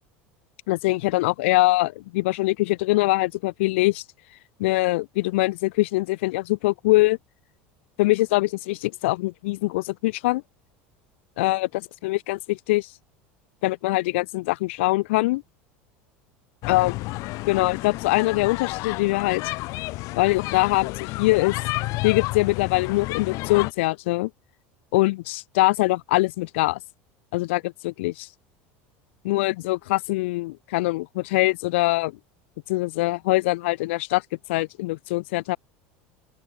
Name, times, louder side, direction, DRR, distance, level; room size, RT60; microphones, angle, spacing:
voice 1, 0.7-4.0 4.6-7.2 8.0-10.4 11.4-11.7 12.0-12.9 13.6-15.4 16.7-16.9 17.5-19.4 20.2-21.6 22.0-24.3 24.9-26.8 27.3-28.3 29.2-32.2 32.7-34.2 34.5-35.6, left 20 dB, 75° left, 1.7 m, -23 dB
sound 1, 16.6-23.7, left 22 dB, 60° left, 0.6 m, -31 dB
open air
hypercardioid pair, 90°, 7 cm